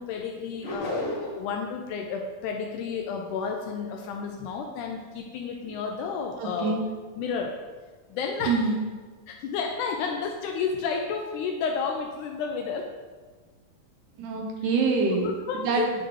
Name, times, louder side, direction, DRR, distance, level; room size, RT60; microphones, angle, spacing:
voice 1, 0.0-6.8 7.2-7.6 8.1-8.7 9.3-12.9 15.5-15.9, left 5 dB, 80° left, 3 dB, 1.9 m, -31 dB
sound 1, 0.6-1.5, left 2 dB, 45° left, 1.7 m, -31 dB
voice 2, 6.4-6.8 8.5-8.8 14.2-16.1, right 4 dB, 75° right, 1 dB, 2.3 m, -26 dB
10.0 x 4.9 x 3.0 m, 1.4 s
omnidirectional pair, 3.9 m